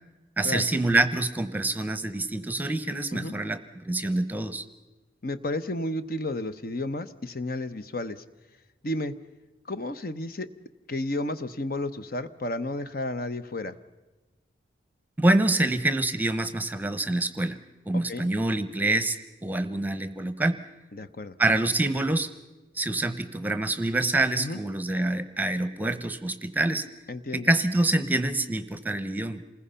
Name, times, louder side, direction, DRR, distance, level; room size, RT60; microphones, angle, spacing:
voice 1, 0.4-4.7 15.2-17.6 17.9-20.6 21.4-22.3 22.7-26.8 27.3-29.4, right 2 dB, 10° right, 12 dB, 0.8 m, -26 dB
voice 2, 5.2-8.2 8.8-9.1 9.7-10.5 10.9-13.7 18.1-18.3 20.9-21.4 24.4-24.6 27.1-27.5, left 1 dB, 50° left, 11 dB, 0.9 m, -32 dB
28.0 x 20.5 x 5.6 m, 1.1 s
head